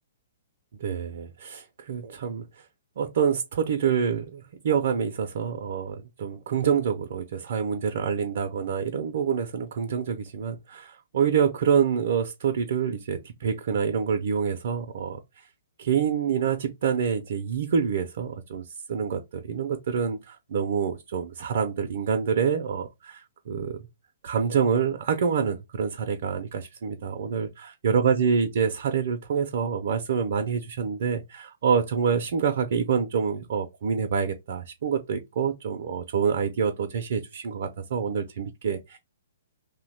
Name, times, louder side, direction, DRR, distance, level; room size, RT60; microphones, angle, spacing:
voice 1, 0.8-2.4 3.0-15.5 15.8-23.8 24.2-27.5 27.8-39.0, right 7 dB, 60° right, 0.4 m, -27 dB
2.7 x 2.1 x 3.9 m
hypercardioid pair, 130°, 0 cm